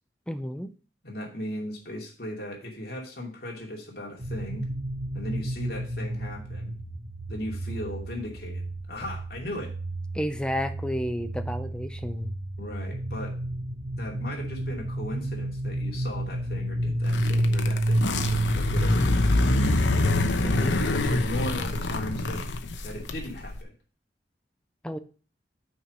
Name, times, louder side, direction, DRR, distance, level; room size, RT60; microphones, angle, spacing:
voice 1, 0.3-0.7 10.1-12.4 20.4-20.8 24.8-25.0, equal, 5° left, 9 dB, 0.5 m, -31 dB
voice 2, 1.0-4.6 5.1-6.7 7.3-9.7 12.6-13.4 14.0-20.0 20.5-22.4 22.8-23.7, left 1 dB, 55° left, -1 dB, 2.5 m, -37 dB
sound 1, 4.2-22.4, right 1 dB, 65° right, 2.6 m, -31 dB
sound 2, 17.0-23.6, left 2 dB, 90° left, 0.8 m, -26 dB
6.3 x 4.7 x 6.3 m, 0.38 s
head